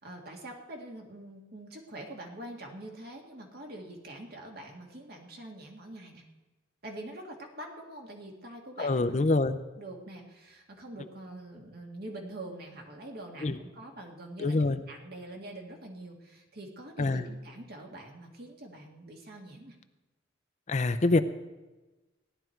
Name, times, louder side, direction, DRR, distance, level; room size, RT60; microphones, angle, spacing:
voice 1, 0.0-6.2 6.8-9.2 9.8-19.8, right 1 dB, 55° right, 1 dB, 2.0 m, -45 dB
voice 2, 8.8-9.6 13.4-13.5 14.4-14.8 17.0-17.2 20.7-21.2, left 2 dB, 40° left, 10 dB, 0.5 m, -25 dB
16.5 x 11.0 x 4.5 m, 1.1 s
head